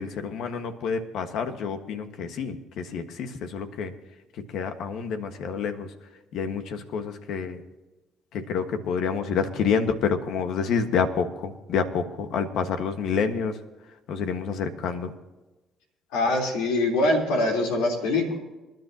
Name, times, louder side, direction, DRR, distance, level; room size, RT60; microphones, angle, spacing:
voice 1, 0.0-3.9 4.5-5.9 6.3-7.6 8.3-13.6 14.1-15.1, left 6 dB, 75° left, 7 dB, 1.5 m, -28 dB
voice 2, 16.1-18.4, left 2 dB, 90° left, 0 dB, 3.6 m, -23 dB
26.5 x 10.5 x 2.9 m, 1.1 s
supercardioid pair, 75°, 0 cm